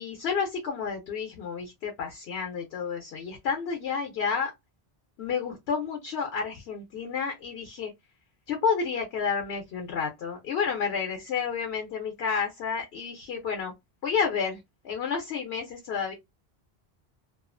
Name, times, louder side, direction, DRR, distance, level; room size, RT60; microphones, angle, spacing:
voice 1, 0.0-4.5 5.2-7.9 8.5-13.7 14.0-16.1, left 6 dB, 80° left, 0.8 m, -30 dB
2.4 x 2.3 x 2.4 m
omnidirectional pair, 1.0 m